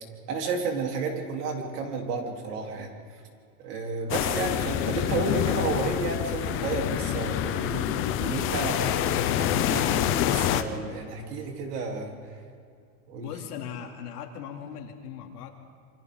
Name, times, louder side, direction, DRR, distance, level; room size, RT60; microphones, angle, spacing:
voice 1, 0.3-2.9 3.6-12.1 13.1-13.3, right 4 dB, 85° right, 1 dB, 4.0 m, -32 dB
sound 1, 4.1-10.6, left 12 dB, 30° left, 0.7 m, -27 dB
voice 2, 13.2-15.5, left 8 dB, 90° left, 2 dB, 3.0 m, -39 dB
27.0 x 24.5 x 4.0 m, 2.4 s
supercardioid pair, 160°, 45 cm